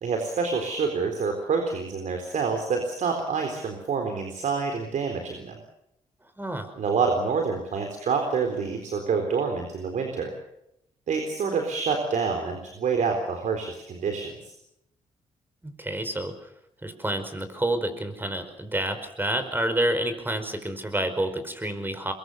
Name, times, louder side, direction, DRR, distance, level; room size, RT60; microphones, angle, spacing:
voice 1, 0.0-5.6 6.8-10.3 11.1-14.5, right 5 dB, 70° right, 4 dB, 3.9 m, -27 dB
voice 2, 6.4-6.7 15.6-16.3 16.8-22.1, right 1 dB, 15° right, 9 dB, 5.1 m, -28 dB
23.5 x 22.0 x 6.9 m, 0.80 s
cardioid pair, 65°, 13 cm